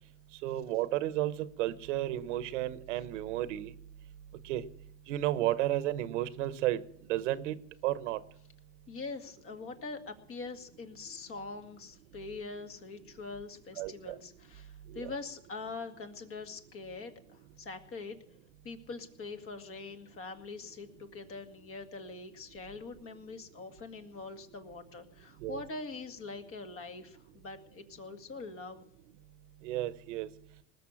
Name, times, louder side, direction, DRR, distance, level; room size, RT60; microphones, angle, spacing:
voice 1, 0.4-3.7 4.4-4.6 5.1-6.8 7.1-7.5 7.8-8.2 13.8-14.2 14.9-15.1 25.4-25.6 29.6-30.3, right 14 dB, 90° right, 14 dB, 1.1 m, -32 dB
voice 2, 8.9-18.2 18.6-28.8, left 3 dB, 40° left, 6 dB, 2.1 m, -43 dB
19.5 x 6.8 x 8.5 m, 0.71 s
supercardioid pair, 115°, 36 cm